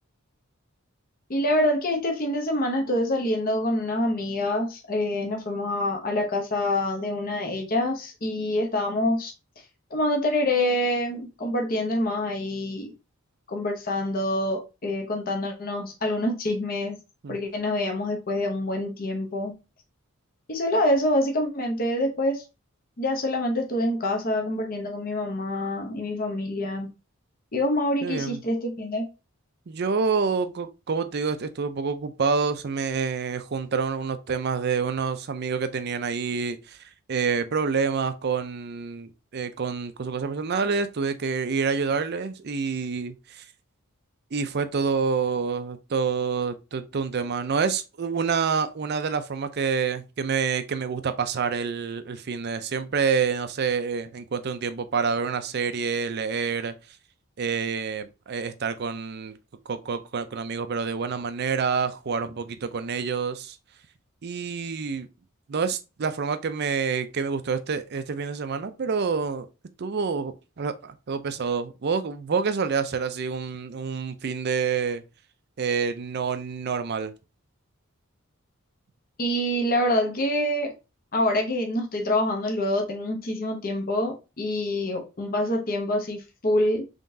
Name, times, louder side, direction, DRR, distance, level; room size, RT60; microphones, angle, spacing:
voice 1, 1.3-9.3 9.9-12.9 13.5-17.0 17.3-19.5 20.5-22.4 23.0-26.9 27.5-29.1 79.2-80.7 81.1-86.8, left 1 dB, 45° left, 0.8 m, -26 dB
voice 2, 28.0-28.4 29.7-43.5 44.3-56.8 57.4-59.4 59.7-63.6 64.2-65.1 65.5-69.5 69.8-75.0 75.6-77.1, right 5 dB, 50° right, 0.5 m, -27 dB
3.8 x 3.5 x 2.7 m
head